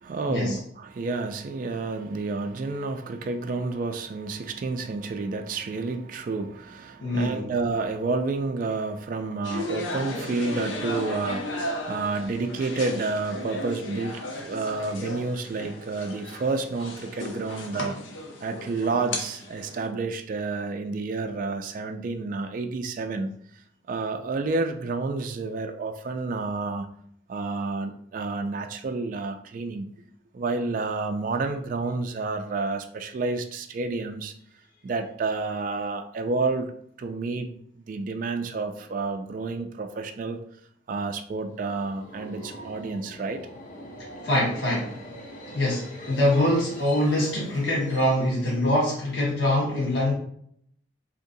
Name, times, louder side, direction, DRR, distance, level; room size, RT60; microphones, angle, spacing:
voice 1, 0.0-18.0 18.4-23.3 23.9-26.9 27.3-29.9 30.3-34.3 34.8-36.7 37.0-37.5 37.8-40.4 40.9-43.4, right 3 dB, 45° right, 6 dB, 0.3 m, -30 dB
voice 2, 7.0-7.5 44.2-45.1 45.5-50.1, left 1 dB, 70° left, -5 dB, 1.0 m, -24 dB
sound 1, 9.4-19.9, left 1 dB, 85° left, 0.6 m, -35 dB
Subway metro underground, 41.4-49.2, equal, 45° left, 0.7 m, -43 dB
3.8 x 2.8 x 2.6 m, 0.66 s
head